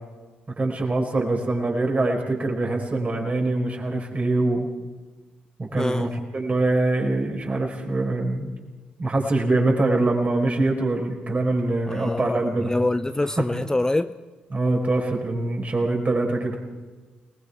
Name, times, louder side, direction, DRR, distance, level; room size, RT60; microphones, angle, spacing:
voice 1, 0.6-4.7 5.6-8.5 9.0-12.7 13.4-13.5 14.5-16.6, right 2 dB, 35° right, 1 dB, 4.8 m, -24 dB
voice 2, 5.7-6.1 11.9-14.1, left 2 dB, 15° left, 12 dB, 0.6 m, -25 dB
29.0 x 19.5 x 4.7 m, 1.3 s
figure-of-eight pair, 40°, 5 cm